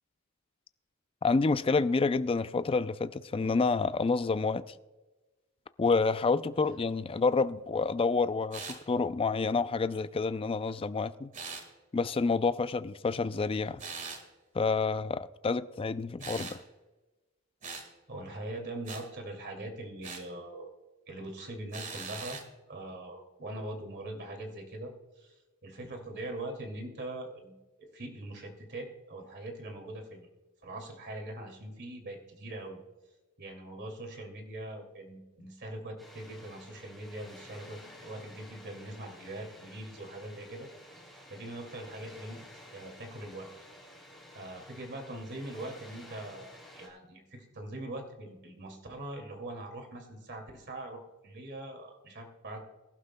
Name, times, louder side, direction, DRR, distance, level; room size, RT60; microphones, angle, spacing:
voice 1, 1.2-4.6 5.8-11.3 11.9-13.8 14.5-16.6, left 4 dB, 25° left, 0.4 m, -28 dB
sound 1, 8.5-8.8 11.3-11.7 13.8-14.2 16.2-16.6 17.6-17.9 18.9-19.1 20.0-20.3 21.7-22.5, right 4 dB, 35° right, 1.7 m, -41 dB
voice 2, 18.1-20.7 21.1-22.4 22.7-24.9 25.2-25.3 25.6-30.3 30.6-32.8 33.4-40.7 41.3-43.5 44.3-52.6, right 1 dB, 55° right, 2.4 m, -42 dB
Water, 36.0-46.9, left 1 dB, ahead, 3.2 m, -52 dB
23.0 x 11.5 x 2.2 m
head